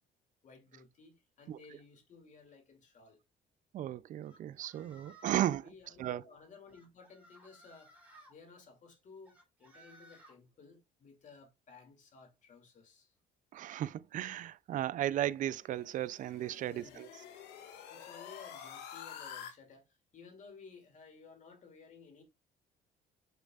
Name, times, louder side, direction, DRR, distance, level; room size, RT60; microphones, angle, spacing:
voice 1, 0.4-3.2 5.2-13.1 16.7-17.1 17.6-22.2, left 4 dB, 45° left, 2.6 m, -57 dB
voice 2, 3.7-5.7 6.0-6.2 13.5-17.1, right 12 dB, 50° right, 0.4 m, -35 dB
sound 1, 4.2-5.5 6.7-8.3 9.3-10.4, right 1 dB, 10° right, 3.2 m, -59 dB
sound 2, 15.5-19.5, left 8 dB, 80° left, 1.6 m, -48 dB
6.7 x 6.4 x 2.4 m
cardioid pair, 110°, 17 cm